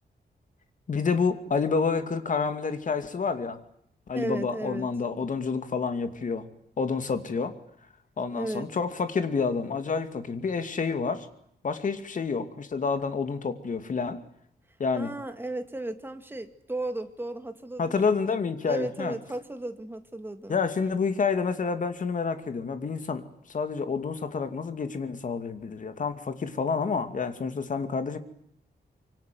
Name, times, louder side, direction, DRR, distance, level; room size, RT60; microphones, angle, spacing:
voice 1, 0.9-3.6 4.1-6.5 6.8-7.6 8.2-11.3 11.6-14.2 14.8-15.1 17.8-19.2 20.5-23.2 23.5-28.2, left 5 dB, 45° left, 9 dB, 2.6 m, -28 dB
voice 2, 4.1-4.9 8.3-8.7 15.0-18.4 18.7-20.6, right 2 dB, 10° right, 8 dB, 2.0 m, -35 dB
25.5 x 24.5 x 9.5 m, 0.71 s
wide cardioid pair, 170°, 18 cm